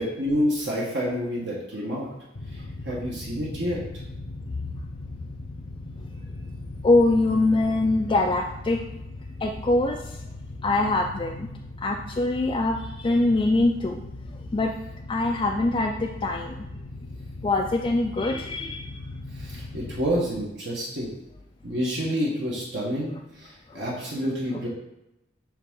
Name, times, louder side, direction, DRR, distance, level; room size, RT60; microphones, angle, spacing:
voice 1, 0.0-2.1 2.8-3.8 19.4-21.1 21.6-23.1 23.4-24.7, equal, 65° right, -5 dB, 1.4 m, -28 dB
sound 1, 2.3-20.1, left 2 dB, 80° left, 0.7 m, -39 dB
voice 2, 6.8-8.8 9.4-10.2 10.6-11.5 11.8-14.0 14.5-14.7 15.1-16.6 17.4-18.9 23.7-23.8, left 2 dB, 25° left, 2 dB, 0.3 m, -23 dB
7.9 x 3.6 x 3.7 m, 0.89 s
head